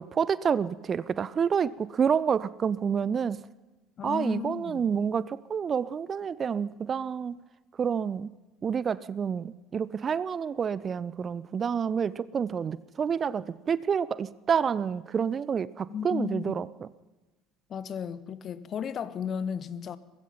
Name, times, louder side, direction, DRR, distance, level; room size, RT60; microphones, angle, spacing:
voice 1, 0.0-3.4 4.0-7.4 7.8-8.3 8.6-16.9, right 7 dB, 30° right, 0.6 m, -28 dB
voice 2, 4.0-4.8 15.9-16.6 17.7-20.0, left 7 dB, 40° left, 1.2 m, -34 dB
23.5 x 20.0 x 5.7 m
figure-of-eight pair, 60°, 0 cm